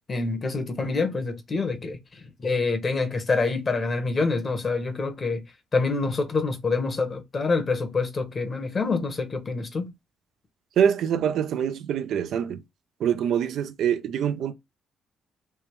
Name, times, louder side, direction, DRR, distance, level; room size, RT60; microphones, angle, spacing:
voice 1, 0.1-5.4 5.7-9.9, left 3 dB, 35° left, 1.0 m, -26 dB
voice 2, 10.8-12.6 13.0-14.5, right 8 dB, 75° right, 0.5 m, -24 dB
3.4 x 2.9 x 3.0 m
cardioid pair, 90°, 0 cm